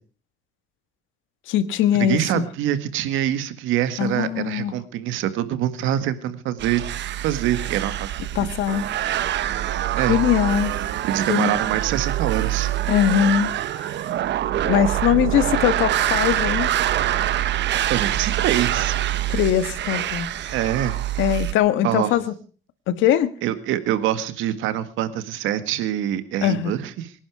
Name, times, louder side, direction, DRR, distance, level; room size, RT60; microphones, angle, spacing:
voice 1, 1.5-2.4 4.0-4.7 8.3-8.8 10.1-10.7 11.3-11.6 12.9-13.8 14.6-16.7 19.3-20.3 21.2-22.3 22.9-23.3 26.4-26.7, left 10 dB, 80° left, 13 dB, 1.7 m, -21 dB
voice 2, 2.0-6.9 7.2-8.1 9.9-10.2 11.0-12.8 17.9-19.0 20.5-21.0 21.8-22.2 23.4-27.1, right 12 dB, 85° right, 12 dB, 1.8 m, -25 dB
sound 1, 6.6-21.5, right 12 dB, 65° right, 1.3 m, -25 dB
24.5 x 11.0 x 4.8 m, 0.39 s
cardioid pair, 105°, 20 cm